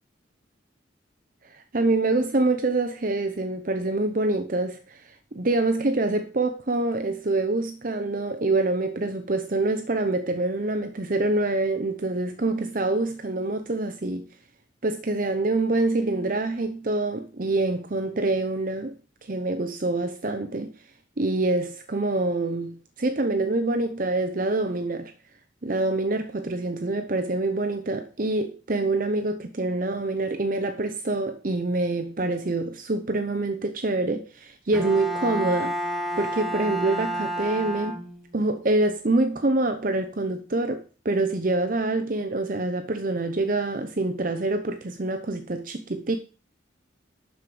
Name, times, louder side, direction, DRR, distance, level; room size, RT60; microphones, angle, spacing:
voice 1, 1.4-14.3 14.8-19.0 19.2-20.7 21.2-25.1 25.6-35.7 36.2-38.0 38.3-46.2, right 2 dB, 45° right, 0.7 m, -26 dB
Bowed string instrument, 34.7-38.5, right 1 dB, ahead, 1.3 m, -30 dB
12.0 x 4.9 x 7.7 m
head